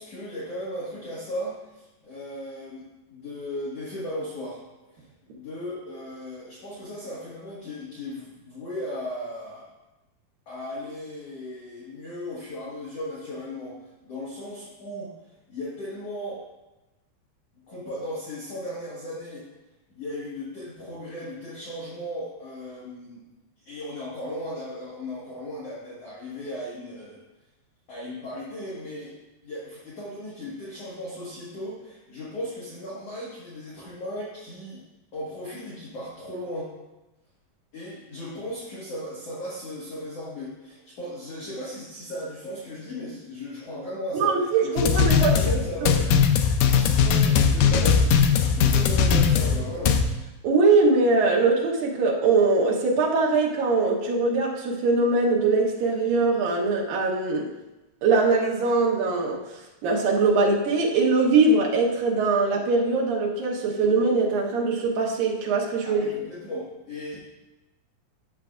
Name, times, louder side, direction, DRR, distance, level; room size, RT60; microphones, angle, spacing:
voice 1, 0.0-4.6 4.9-9.7 10.5-13.8 14.0-15.1 15.5-16.4 17.7-19.5 19.9-23.2 23.6-27.2 27.9-29.1 29.4-34.8 35.1-36.7 37.7-46.1 46.8-50.0 65.8-67.2, left 1 dB, 50° left, -7 dB, 2.1 m, -36 dB
voice 2, 44.1-45.3 45.8-45.9 50.4-57.5 58.0-66.1, right 3 dB, 70° right, -2 dB, 2.7 m, -22 dB
sound 1, 44.8-50.0, left 6 dB, 80° left, 2.0 m, -20 dB
11.5 x 7.3 x 2.5 m, 1.0 s
omnidirectional pair, 4.4 m